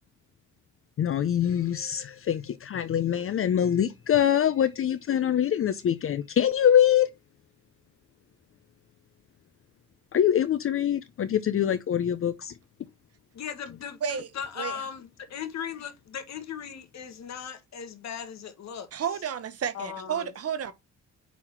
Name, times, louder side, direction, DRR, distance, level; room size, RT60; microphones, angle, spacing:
voice 1, 1.0-7.1 10.1-12.5, left 9 dB, 45° left, 0.6 m, -24 dB
voice 2, 13.3-18.9 19.7-20.3, left 8 dB, 60° left, 1.5 m, -38 dB
voice 3, 14.6-14.9 18.9-20.7, right 8 dB, 50° right, 1.0 m, -31 dB
5.6 x 4.2 x 4.4 m
cardioid pair, 90°, 30 cm